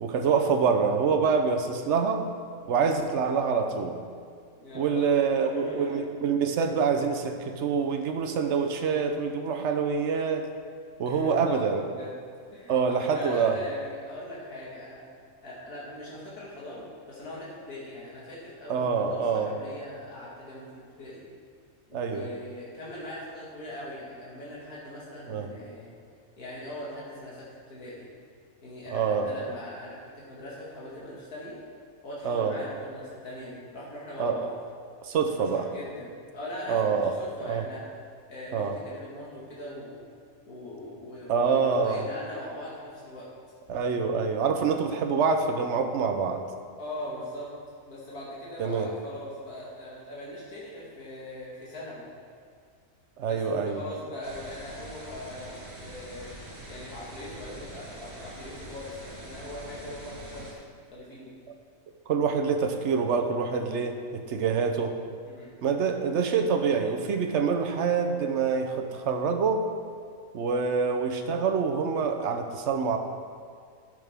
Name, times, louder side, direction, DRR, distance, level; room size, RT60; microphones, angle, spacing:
voice 1, 0.0-2.2 2.7-4.0 4.7-10.5 11.0-11.8 12.7-13.6 18.7-19.5 21.9-22.2 25.3-25.5 28.9-29.3 32.2-32.6 34.2-34.4 35.0-35.7 36.7-37.1 37.4-37.7 38.5-38.7 41.3-42.0 43.7-46.4 48.6-48.9 53.2-53.9 62.1-64.9 65.6-69.6 70.3-73.0, right 5 dB, 60° right, 5 dB, 0.9 m, -26 dB
voice 2, 4.6-6.0 11.0-12.2 12.5-15.0 15.4-21.2 21.9-26.0 26.4-28.1 28.6-31.6 32.0-34.5 35.3-37.8 38.3-40.1 40.5-43.3 46.8-47.5 47.9-52.1 53.2-56.3 56.7-60.6 60.9-61.3 65.3-65.6, left 1 dB, 90° left, -7 dB, 2.2 m, -40 dB
sound 1, 54.2-60.5, right 1 dB, 30° right, 1.3 m, -44 dB
12.5 x 6.5 x 3.6 m, 2.1 s
omnidirectional pair, 1.5 m